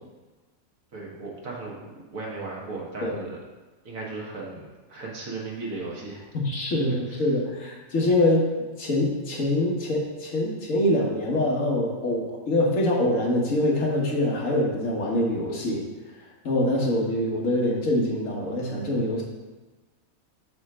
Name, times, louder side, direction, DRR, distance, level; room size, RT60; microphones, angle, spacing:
voice 1, 0.9-1.8 2.1-3.4 3.8-6.3 6.9-7.2, right 3 dB, 70° right, -3 dB, 1.8 m, -36 dB
voice 2, 6.3-15.8 16.4-19.2, left 1 dB, 65° left, -2 dB, 1.6 m, -24 dB
7.1 x 3.2 x 6.0 m, 1.2 s
omnidirectional pair, 1.5 m